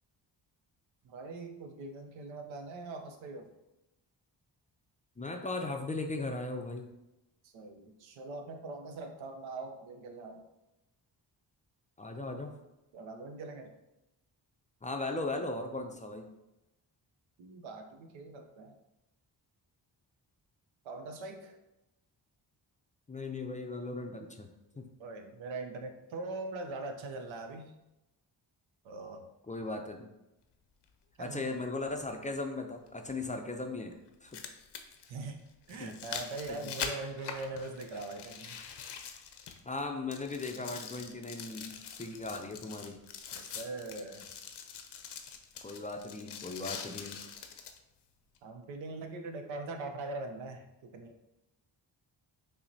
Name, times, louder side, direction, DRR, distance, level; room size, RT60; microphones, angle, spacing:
voice 1, 1.0-3.5 7.4-10.4 12.9-13.7 17.4-18.7 20.8-21.6 25.0-27.7 28.8-29.2 31.2-31.5 35.1-35.4 35.7-38.6 40.6-40.7 43.3-44.3 48.4-51.1, right 3 dB, 90° right, 6 dB, 0.6 m, -42 dB
voice 2, 5.2-6.9 12.0-12.6 14.8-16.3 23.1-24.5 24.8-24.9 29.5-30.1 31.2-33.9 34.2-34.4 35.8-36.0 36.5-36.6 39.7-43.0 45.6-47.2, left 2 dB, 20° left, 3 dB, 0.3 m, -38 dB
sound 1, 30.8-30.9 32.9-33.0 34.1-39.8 40.1-47.8 48.4-48.5, left 7 dB, 65° left, 0.6 m, -44 dB
5.5 x 2.1 x 2.6 m, 0.95 s
cardioid pair, 55°, 45 cm